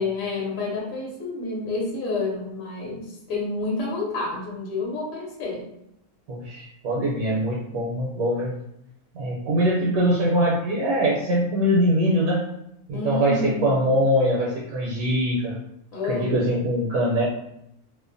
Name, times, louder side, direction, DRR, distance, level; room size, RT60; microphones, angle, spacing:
voice 1, 0.0-5.7 12.9-13.7 15.9-16.5, left 3 dB, 65° left, -2 dB, 1.0 m, -29 dB
voice 2, 6.3-8.5 9.1-12.4 12.9-15.5 16.0-17.2, equal, 75° right, -4 dB, 1.0 m, -22 dB
2.7 x 2.1 x 2.5 m, 0.80 s
omnidirectional pair, 1.6 m